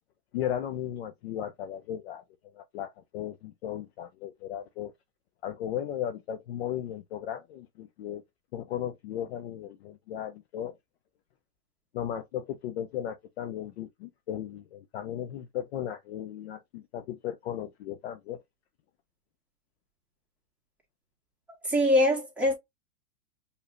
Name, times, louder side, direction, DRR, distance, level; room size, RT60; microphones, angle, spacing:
voice 1, 0.3-2.2 2.5-4.9 5.4-8.2 8.5-10.8 11.9-18.4, left 10 dB, 45° left, 0.6 m, -36 dB
voice 2, 21.5-22.5, left 1 dB, 5° right, 1.7 m, -24 dB
4.7 x 3.3 x 2.5 m
hypercardioid pair, 140°, 46 cm